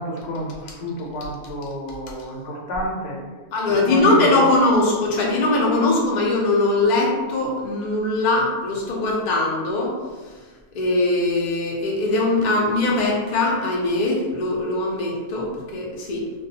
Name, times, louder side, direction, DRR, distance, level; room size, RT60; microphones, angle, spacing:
voice 1, 0.0-3.2 3.9-4.5, left 1 dB, 80° left, -2 dB, 1.0 m, -29 dB
voice 2, 3.5-10.0 10.7-16.3, left 2 dB, 55° left, -2 dB, 0.5 m, -21 dB
2.3 x 2.2 x 2.7 m, 1.4 s
omnidirectional pair, 1.2 m